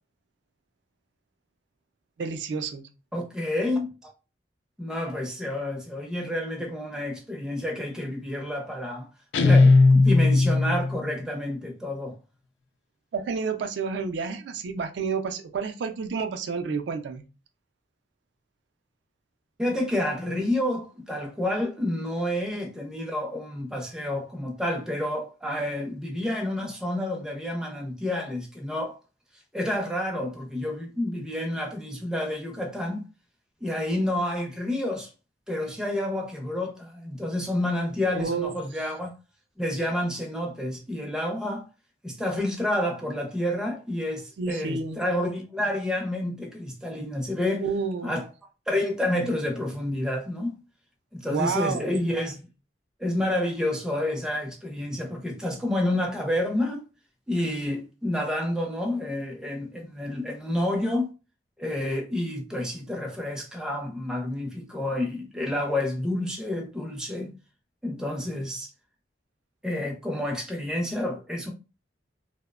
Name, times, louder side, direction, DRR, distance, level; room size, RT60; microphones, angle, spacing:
voice 1, 2.2-2.9 13.1-17.2 38.1-38.5 44.4-45.0 47.6-48.1 51.3-52.0, right 5 dB, 70° right, 0.3 m, -30 dB
voice 2, 3.1-4.1 4.8-9.1 9.4-12.2 19.6-29.0 29.5-33.0 33.6-35.1 35.5-39.1 39.6-41.6 42.0-47.7 48.0-48.3 48.7-50.6 51.1-52.5 53.0-56.8 57.3-61.1 61.6-67.3 67.8-68.7 69.6-71.5, left 1 dB, 5° right, 0.4 m, -29 dB
Guitar, 9.3-11.0, left 3 dB, 70° left, 0.3 m, -17 dB
2.8 x 2.0 x 2.3 m
head